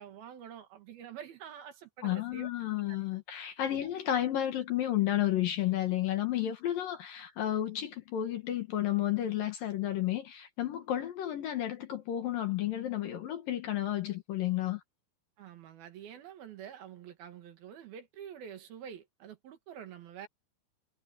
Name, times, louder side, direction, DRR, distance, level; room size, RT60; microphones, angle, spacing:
voice 1, 0.0-2.5 2.9-3.0 3.7-3.9 15.4-20.3, right 8 dB, 60° right, 3.2 m, -47 dB
voice 2, 2.0-14.8, left 12 dB, 65° left, 2.5 m, -32 dB
omnidirectional pair, 5.5 m